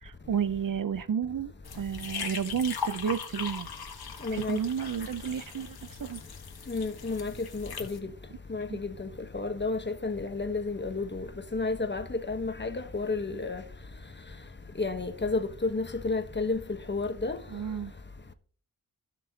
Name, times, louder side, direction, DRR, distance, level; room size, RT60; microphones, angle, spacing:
voice 1, 0.0-3.7 4.3-6.2 8.7-8.8 17.5-17.9, right 7 dB, 60° right, 0.7 m, -32 dB
sound 1, 1.6-8.0, left 6 dB, 85° left, 1.5 m, -40 dB
voice 2, 4.2-4.6 6.7-8.1 8.5-13.6 14.8-16.6 16.9-17.4, left 3 dB, 30° left, 1.1 m, -31 dB
16.5 x 6.1 x 2.8 m
wide cardioid pair, 90°, 36 cm